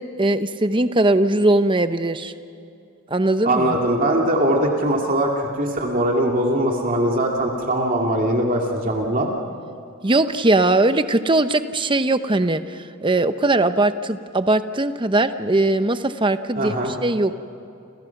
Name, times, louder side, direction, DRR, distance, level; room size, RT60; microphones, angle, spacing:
voice 1, 0.0-2.3 3.1-3.8 10.0-12.6 13.0-16.7 17.0-17.3, right 2 dB, 20° right, 10 dB, 0.8 m, -20 dB
voice 2, 3.4-9.3 16.6-16.9, right 1 dB, 40° right, 0 dB, 2.7 m, -21 dB
30.0 x 28.0 x 6.0 m, 2.6 s
head